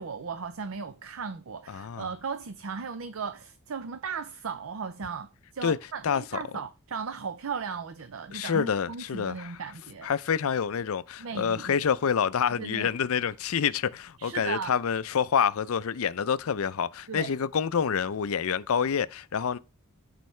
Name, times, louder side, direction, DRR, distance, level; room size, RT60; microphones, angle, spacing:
voice 1, 0.0-10.1 11.2-11.8 12.5-12.9 14.2-14.8 17.1-17.3, right 5 dB, 70° right, 0.5 m, -36 dB
voice 2, 1.7-2.1 5.6-5.8 6.0-6.2 8.3-9.5 10.0-19.6, left 7 dB, 70° left, 0.5 m, -27 dB
13.5 x 4.6 x 3.2 m
head